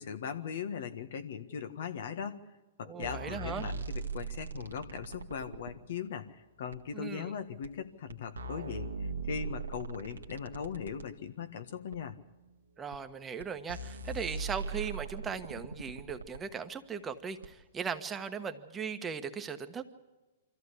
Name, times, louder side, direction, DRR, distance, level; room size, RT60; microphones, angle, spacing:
voice 1, 0.0-2.4 2.8-12.2, left 7 dB, 65° left, 8 dB, 1.6 m, -39 dB
voice 2, 2.8-3.7 6.9-7.3 12.8-19.8, right 6 dB, 20° right, 7 dB, 1.3 m, -38 dB
sound 1, 3.0-5.7 6.7-6.8 7.6-7.7 8.1-11.1 11.9-12.0 12.9-13.0 13.4-13.5 13.7-16.4 17.4-17.5, right 4 dB, 90° right, 1.4 m, -39 dB
24.5 x 14.5 x 8.3 m, 1.2 s
hypercardioid pair, 120°, 0 cm